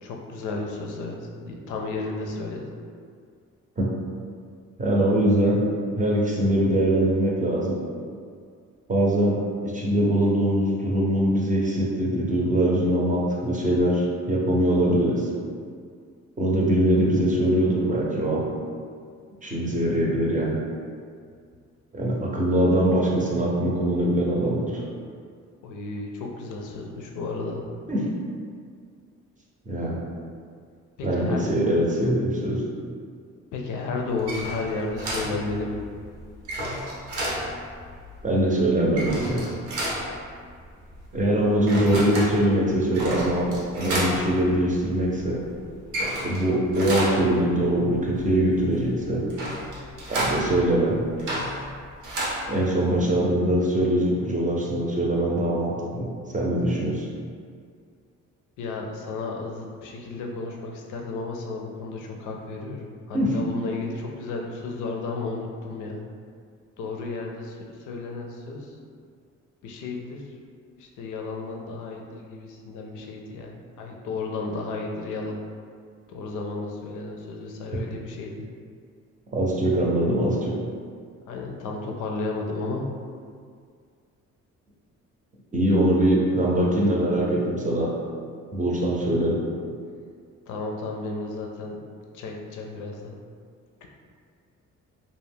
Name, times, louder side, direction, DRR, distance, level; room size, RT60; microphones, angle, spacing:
voice 1, 0.0-2.7 22.2-22.3 25.6-27.7 31.0-31.4 33.5-35.8 58.6-66.0 66.8-68.8 69.6-70.3 70.8-75.4 76.1-78.5 81.3-82.9 90.5-91.8 92.1-93.2 93.8-93.9, left 3 dB, 80° left, 1 dB, 0.5 m, -33 dB
voice 2, 4.8-5.6 6.0-7.8 8.9-9.4 9.6-15.3 16.4-18.4 19.4-20.5 21.9-24.8 27.9-28.1 29.7-30.0 31.0-32.6 38.2-39.5 41.1-45.4 46.2-49.2 50.1-51.0 52.5-56.1 56.3-57.1 63.1-63.4 79.3-80.6 85.5-87.9 88.5-89.4, right 1 dB, 25° right, -4 dB, 0.6 m, -22 dB
sound 1, 34.1-53.0, right 1 dB, 80° right, 0.8 m, -32 dB
2.3 x 2.1 x 3.4 m, 2.2 s
cardioid pair, 90°, 30 cm